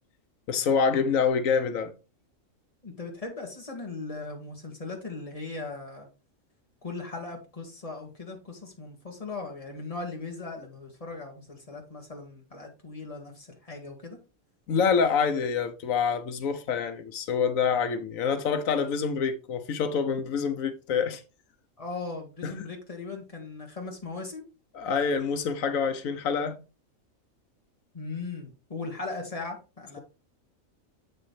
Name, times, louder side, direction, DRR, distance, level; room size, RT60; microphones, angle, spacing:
voice 1, 0.5-1.9 14.7-21.2 22.4-22.7 24.7-26.6, left 6 dB, 85° left, 1.2 m, -26 dB
voice 2, 2.8-6.1 6.8-14.2 21.8-24.4 27.9-30.0, left 3 dB, 25° left, 2.1 m, -38 dB
7.6 x 6.6 x 3.2 m
omnidirectional pair, 1.4 m